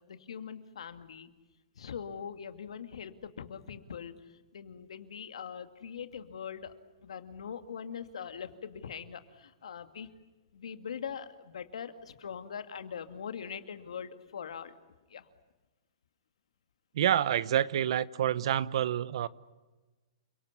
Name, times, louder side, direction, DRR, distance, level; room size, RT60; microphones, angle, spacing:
voice 1, 0.1-1.3 1.8-6.8 7.0-10.1 10.5-14.7 15.1-15.3, left 7 dB, 80° left, 2.2 m, -42 dB
voice 2, 16.9-19.3, right 11 dB, 65° right, 1.0 m, -28 dB
29.5 x 18.0 x 9.7 m
hypercardioid pair, 135°, 3 cm